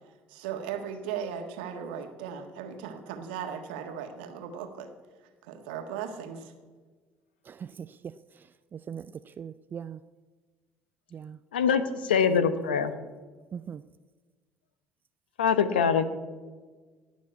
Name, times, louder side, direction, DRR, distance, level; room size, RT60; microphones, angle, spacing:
voice 1, 0.3-4.9 5.4-6.5, right 7 dB, 75° right, 6 dB, 1.6 m, -37 dB
voice 2, 7.5-8.4 8.7-10.0 11.1-11.4 13.5-13.8, right 7 dB, 40° right, 14 dB, 0.4 m, -40 dB
voice 3, 11.5-12.9 15.4-16.1, left 7 dB, 85° left, 12 dB, 0.9 m, -24 dB
18.5 x 6.2 x 8.4 m, 1.4 s
hypercardioid pair, 60°, 5 cm